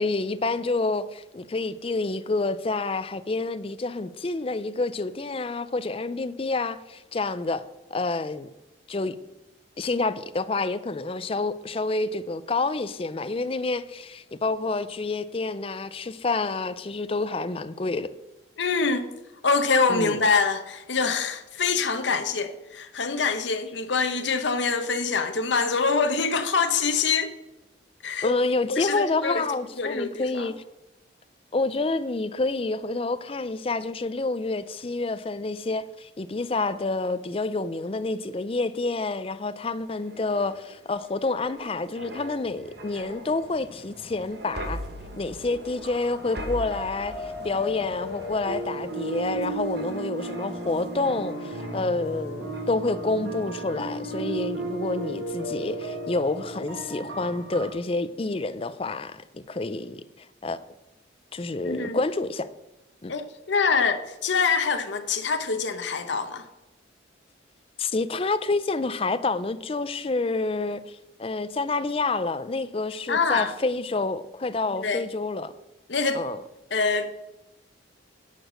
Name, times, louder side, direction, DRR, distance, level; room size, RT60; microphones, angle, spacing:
voice 1, 0.0-7.6 7.9-8.5 8.9-9.2 9.8-18.1 19.9-20.2 28.2-30.6 31.5-44.8 45.2-60.6 61.3-62.5 63.0-63.1 67.8-75.5 76.1-76.4, left 3 dB, 30° left, 0.4 m, -28 dB
voice 2, 18.6-19.1 19.4-27.3 28.0-28.3 28.7-29.4 29.8-30.5 61.6-62.0 63.1-66.4 73.1-73.5 74.8-75.0 75.9-76.2 76.7-77.2, left 4 dB, 70° left, 0.9 m, -25 dB
sound 1, 39.8-52.2 52.5-52.8, equal, 55° right, 1.2 m, -41 dB
sound 2, 45.8-57.7, right 1 dB, 90° right, 3.2 m, -34 dB
10.5 x 4.9 x 6.3 m
head